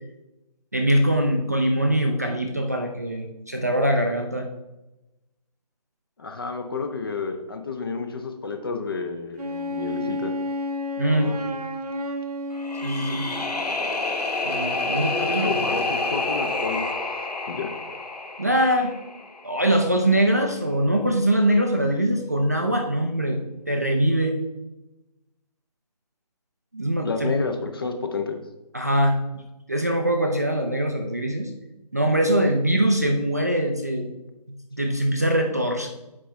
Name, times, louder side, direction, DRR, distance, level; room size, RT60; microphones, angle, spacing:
voice 1, 0.7-4.5 11.0-11.3 12.8-13.3 14.5-15.5 18.4-18.9 19.4-23.4 23.7-24.4 26.7-27.3 28.7-31.5 31.9-34.1 34.7-35.9, right 1 dB, 25° right, 2 dB, 0.4 m, -22 dB
voice 2, 6.2-10.3 11.1-11.4 15.2-17.0 17.5-17.7 27.0-28.4, left 4 dB, 35° left, 6 dB, 0.7 m, -30 dB
Wind instrument woodwind instrument, 9.4-13.7, left 1 dB, 65° right, 0.9 m, -31 dB
sound 1, 12.5-19.6, left 3 dB, 70° left, 1.0 m, -28 dB
7.6 x 5.0 x 3.2 m, 0.97 s
figure-of-eight pair, 160°, 21 cm